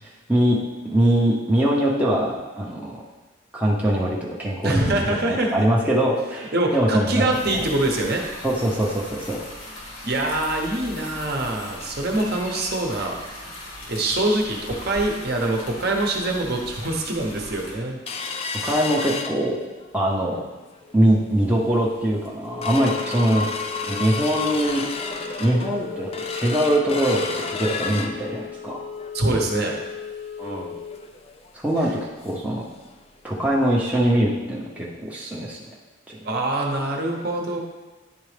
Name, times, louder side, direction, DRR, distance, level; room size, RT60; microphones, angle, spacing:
voice 1, 0.8-3.0 3.5-7.6 8.4-9.4 18.6-19.6 19.9-20.4 20.9-23.5 23.8-24.8 25.4-28.8 30.4-30.7 31.6-31.9 32.2-32.6 33.2-35.6 36.1-36.2, right 1 dB, 5° right, -5 dB, 0.6 m, -22 dB
voice 2, 4.6-5.5 6.5-8.2 10.0-13.2 13.9-18.0 18.6-18.8 29.1-29.7 36.2-37.6, right 2 dB, 50° right, 0 dB, 0.9 m, -24 dB
sound 1, 7.3-17.7, left 1 dB, 85° left, 1.6 m, -39 dB
sound 2, 18.1-19.9 20.3-20.4 20.8-21.1 21.6-21.7 22.0-32.6 32.9-33.0 33.4-33.5 34.1-34.2, left 5 dB, 30° left, 0.4 m, -31 dB
10.0 x 4.0 x 3.3 m, 1.2 s
head